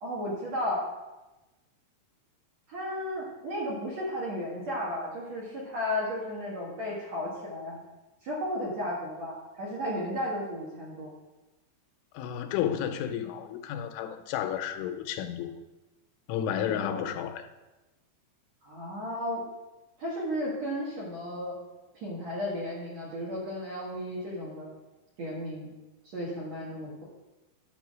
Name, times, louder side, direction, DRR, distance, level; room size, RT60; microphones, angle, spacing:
voice 1, 0.0-0.8 2.7-7.8 8.2-11.1 16.7-17.0 18.6-19.4 20.0-21.5 21.9-24.7 25.2-25.7 26.1-27.0, left 1 dB, 55° right, 2.1 m, -34 dB
voice 2, 12.1-15.5 16.3-17.5, left 9 dB, 90° left, 3.1 m, -32 dB
11.5 x 5.1 x 6.1 m
omnidirectional pair, 5.3 m